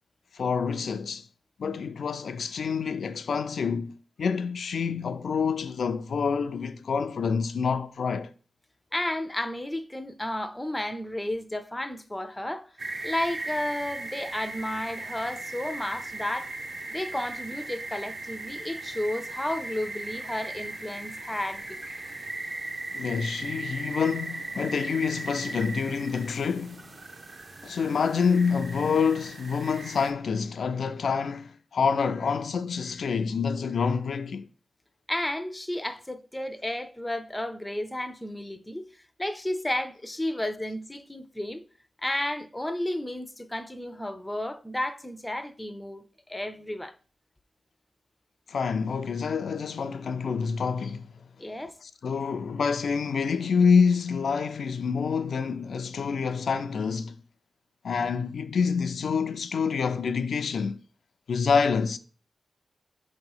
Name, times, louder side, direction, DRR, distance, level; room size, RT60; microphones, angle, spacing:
voice 1, 0.3-1.3 1.6-8.3 22.9-26.8 27.6-34.5 48.5-51.1 51.8-57.2 57.8-60.8 61.3-62.0, left 5 dB, 75° left, 0.3 m, -27 dB
voice 2, 8.9-12.7 13.0-16.5 16.9-21.8 35.1-38.9 39.2-41.6 42.0-46.9 51.4-51.7, left 1 dB, 10° left, 0.4 m, -32 dB
sound 1, 12.8-30.1, right 2 dB, 45° right, 0.8 m, -38 dB
5.8 x 3.0 x 5.4 m
wide cardioid pair, 115°, 0 cm